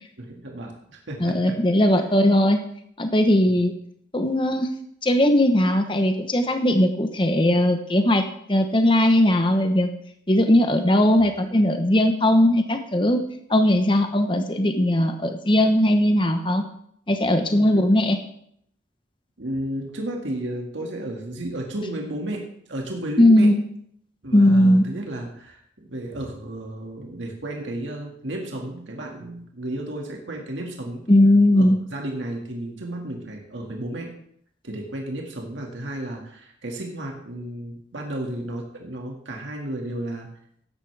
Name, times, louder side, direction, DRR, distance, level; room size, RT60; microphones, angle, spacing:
voice 1, 0.2-1.6 2.0-2.1 3.4-3.6 17.5-17.9 19.4-23.5 24.2-31.0 31.6-34.2 34.6-40.4, right 1 dB, 85° right, 0 dB, 1.9 m, -33 dB
voice 2, 1.2-2.6 3.0-3.7 4.1-4.7 5.0-9.9 10.3-13.2 13.5-16.6 17.1-18.2 23.2-23.6 24.3-24.8 31.1-31.8, left 1 dB, 25° left, 6 dB, 0.9 m, -19 dB
14.0 x 10.0 x 3.4 m, 0.69 s
head